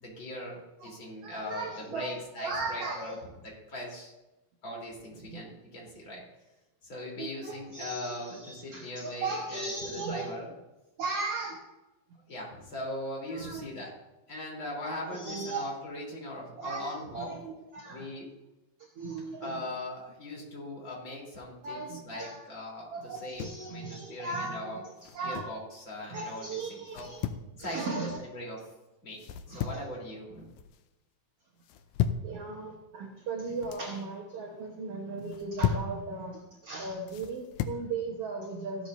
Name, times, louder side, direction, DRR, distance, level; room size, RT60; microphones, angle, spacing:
voice 1, 0.0-3.1 3.7-4.1 4.6-6.2 6.8-10.5 12.3-13.9 14.3-17.4 17.9-18.3 19.4-24.8 25.2-27.1 27.5-28.6 29.0-30.5, left 1 dB, 35° left, -3 dB, 4.3 m, -40 dB
voice 2, 0.8-3.2 5.2-5.4 7.2-10.3 11.0-11.6 13.3-13.6 14.8-15.6 16.6-18.1 19.0-19.6 21.6-22.5 22.9-25.5 26.0-27.2 27.6-28.3 29.5-29.7 32.2-38.9, right 3 dB, 55° right, 0 dB, 1.9 m, -37 dB
sound 1, 23.1-23.7 25.0-25.6 26.9-27.5 29.2-29.9 30.3-30.8 31.6-32.3 33.4-33.9 35.2-35.9 37.1-37.8, left 9 dB, 75° left, 1.9 m, -34 dB
16.0 x 13.0 x 2.7 m, 1.0 s
omnidirectional pair, 3.8 m